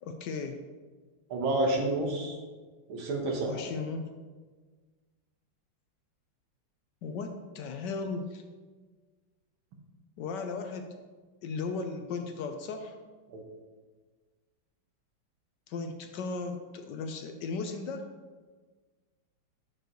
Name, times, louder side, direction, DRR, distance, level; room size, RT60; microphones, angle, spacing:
voice 1, 0.0-0.6 3.5-4.1 7.0-8.4 10.2-10.9 11.4-13.0 15.7-18.1, left 4 dB, 75° left, 5 dB, 1.1 m, -36 dB
voice 2, 1.3-2.4 2.9-3.6 13.3-13.4, right 2 dB, 85° right, 1 dB, 2.0 m, -29 dB
8.1 x 6.8 x 3.0 m, 1.4 s
omnidirectional pair, 2.2 m